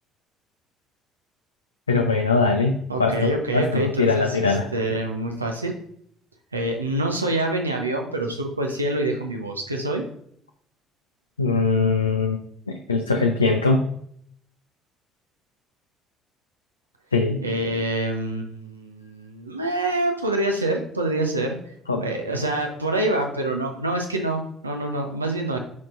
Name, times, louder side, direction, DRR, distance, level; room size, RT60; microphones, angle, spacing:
voice 1, 1.9-4.7 11.4-12.4 12.7-13.8 17.1-17.4 21.9-22.0, left 4 dB, 85° left, 2 dB, 0.4 m, -21 dB
voice 2, 2.9-5.7 6.5-10.0 17.4-21.6 22.0-25.6, right 1 dB, 85° right, 2 dB, 0.8 m, -26 dB
7.5 x 5.8 x 2.5 m, 0.66 s
figure-of-eight pair, 50°, 0 cm